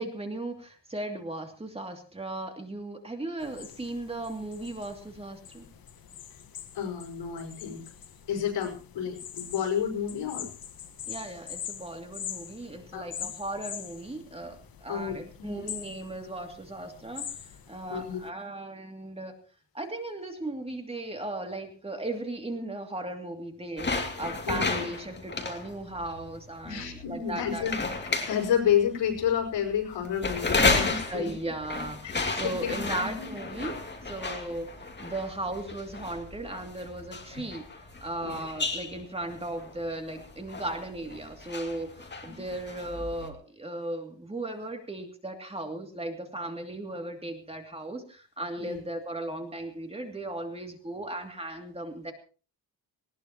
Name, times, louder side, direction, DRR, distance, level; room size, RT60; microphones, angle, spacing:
voice 1, 0.0-5.7 11.1-19.4 19.7-27.7 31.0-33.8 34.1-52.1, right 2 dB, 15° right, 4 dB, 2.7 m, -37 dB
sound 1, 3.4-18.3, left 9 dB, 55° left, 1.6 m, -43 dB
voice 2, 6.7-7.9 8.3-10.5 12.9-13.1 14.9-15.7 17.9-18.2 24.4-24.9 26.6-27.8 28.2-31.3 32.0-33.7 38.2-38.4 42.3-42.4 48.6-48.8, left 8 dB, 80° left, 2 dB, 5.5 m, -30 dB
sound 2, 23.8-43.3, left 3 dB, 25° left, 2.6 m, -33 dB
19.5 x 19.0 x 3.0 m, 0.37 s
cardioid pair, 135°, 42 cm